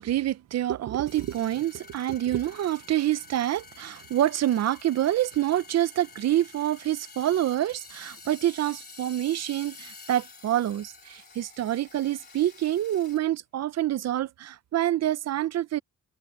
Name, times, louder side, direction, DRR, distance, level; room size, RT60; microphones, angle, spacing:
voice 1, 0.0-15.8, right 12 dB, 60° right, 0.6 m, -27 dB
sound 1, 1.1-13.2, left 4 dB, 35° left, 3.1 m, -49 dB
open air
cardioid pair, 125°, 30 cm